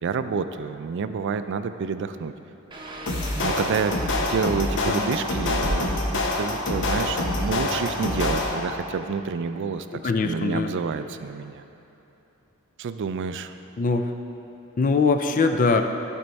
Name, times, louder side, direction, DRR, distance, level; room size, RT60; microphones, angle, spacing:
voice 1, 0.0-2.3 3.4-9.9 10.2-11.6 12.8-13.6, right 5 dB, 55° right, 11 dB, 0.3 m, -29 dB
sound 1, 2.7-9.7, right 1 dB, 20° right, 0.7 m, -38 dB
sound 2, 3.1-8.8, left 2 dB, 55° left, 0.8 m, -26 dB
voice 2, 10.0-10.7 13.8-14.1 14.8-15.8, left 4 dB, 40° left, 6 dB, 0.4 m, -22 dB
12.5 x 4.5 x 4.0 m, 3.0 s
head